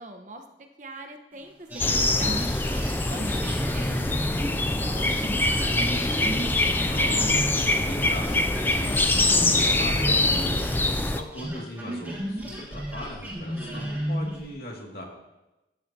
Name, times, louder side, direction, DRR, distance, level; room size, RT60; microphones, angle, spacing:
voice 1, 0.0-6.1, right 2 dB, 45° right, 5 dB, 1.2 m, -44 dB
sound 1, 1.7-8.0 8.2-14.5, equal, 10° right, 3.0 m, -34 dB
sound 2, 1.8-11.2, left 2 dB, 10° left, 0.4 m, -24 dB
voice 2, 6.8-15.0, left 1 dB, 55° left, -1 dB, 2.5 m, -39 dB
14.5 x 13.5 x 2.9 m, 1.0 s
head